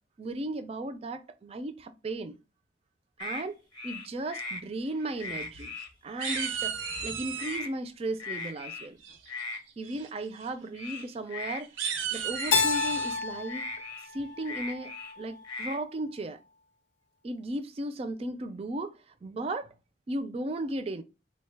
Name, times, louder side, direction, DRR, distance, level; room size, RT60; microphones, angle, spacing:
voice 1, 0.2-2.4 3.2-3.6 3.8-5.7 6.0-6.8 7.0-9.0 9.8-11.7 12.1-13.7 14.1-16.4 17.2-19.7 20.1-21.0, right 1 dB, 30° right, 0.3 m, -35 dB
sound 1, 3.2-3.4 3.7-4.6 5.0-5.9 6.2-6.5 6.8-7.1 7.4-7.7 8.2-8.9 9.3-9.6 10.7-11.6 12.3-13.0 13.5-15.1 15.4-15.8, left 3 dB, 25° left, 0.6 m, -38 dB
sound 2, 5.2-5.8 6.2-7.6 9.0-9.4 9.8-10.1 10.3-10.5 10.9-11.0 11.6-13.2, right 7 dB, 85° right, 0.6 m, -35 dB
Keyboard (musical), 12.5-15.3, left 4 dB, 75° left, 0.5 m, -30 dB
4.0 x 2.1 x 3.2 m
head